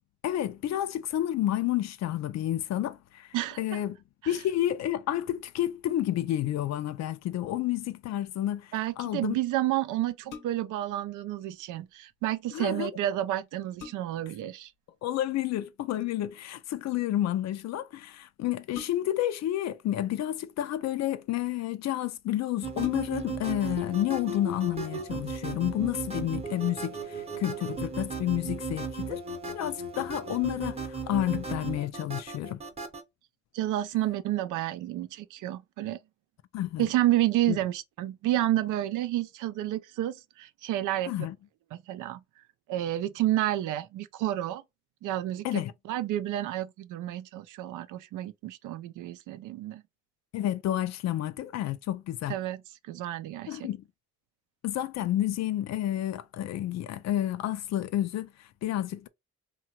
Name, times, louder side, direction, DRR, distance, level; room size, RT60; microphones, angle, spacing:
voice 1, 0.2-4.0 4.3-9.3 12.5-12.9 15.0-29.2 29.5-32.6 36.5-36.9 37.5-37.6 41.1-41.4 45.4-45.7 50.3-52.3 53.5-53.8 54.6-59.1, left 13 dB, 60° left, 0.4 m, -30 dB
voice 2, 3.3-3.8 8.7-14.7 33.5-36.0 36.8-41.1 41.9-42.2 42.7-44.6 45.0-45.6 45.9-49.8 52.3-52.6 52.9-53.7, right 14 dB, 85° right, 0.5 m, -30 dB
sound 1, 10.1-10.8 12.9-13.0 13.4-14.4 15.9-16.3 18.7-19.3 20.3-21.0 21.8-21.9 22.2-22.3 22.7-23.4 23.9-24.0, left 6 dB, 80° left, 1.0 m, -46 dB
sound 2, 22.6-33.0, right 3 dB, 20° right, 0.8 m, -36 dB
2.8 x 2.3 x 2.8 m
cardioid pair, 90°, 30 cm